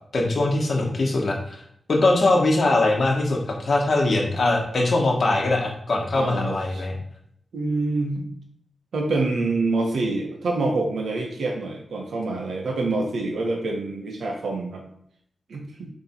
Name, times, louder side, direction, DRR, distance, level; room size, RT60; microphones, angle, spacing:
voice 1, 0.1-1.6 1.9-7.0, left 2 dB, 50° left, 0 dB, 1.5 m, -21 dB
voice 2, 6.1-6.8 7.5-8.3 8.9-14.8 15.5-15.9, right 3 dB, 80° right, 1 dB, 1.4 m, -26 dB
7.1 x 3.5 x 4.5 m, 0.69 s
wide cardioid pair, 165°, 0 cm